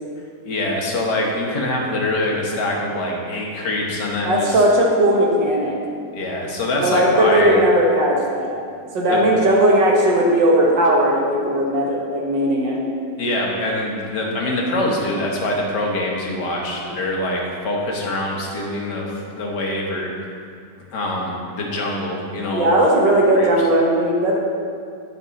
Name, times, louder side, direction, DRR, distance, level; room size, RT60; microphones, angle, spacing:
voice 1, 0.5-4.6 6.1-7.6 9.1-9.2 13.2-20.1 20.9-22.7 23.3-23.5, left 1 dB, 70° left, -2 dB, 2.0 m, -24 dB
voice 2, 4.2-5.8 6.8-8.5 8.9-12.8 22.4-24.4, right 1 dB, 85° right, -2 dB, 2.1 m, -17 dB
10.0 x 7.1 x 4.1 m, 2.2 s
omnidirectional pair, 1.9 m